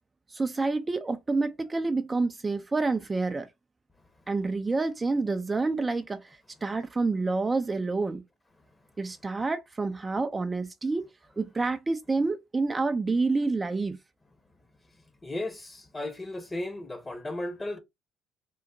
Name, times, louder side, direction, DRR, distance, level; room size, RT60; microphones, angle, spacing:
voice 1, 0.3-3.5 4.3-8.2 9.0-11.1 11.4-14.0, right 3 dB, 25° right, 0.4 m, -28 dB
voice 2, 15.2-17.8, left 1 dB, 20° left, 0.9 m, -35 dB
3.7 x 2.1 x 2.6 m
hypercardioid pair, 65°, 0 cm